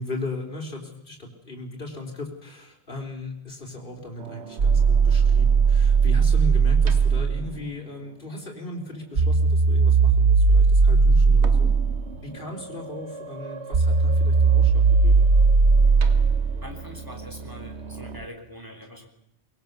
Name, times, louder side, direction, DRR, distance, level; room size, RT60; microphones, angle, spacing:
voice 1, 0.0-11.7 12.2-15.3, left 2 dB, 50° left, 1 dB, 4.3 m, -36 dB
sound 1, 4.2-7.4 9.2-18.2, right 4 dB, 80° right, 1.5 m, -19 dB
voice 2, 16.6-19.1, equal, 20° right, 3 dB, 3.5 m, -43 dB
23.5 x 21.5 x 6.9 m, 0.80 s
omnidirectional pair, 1.1 m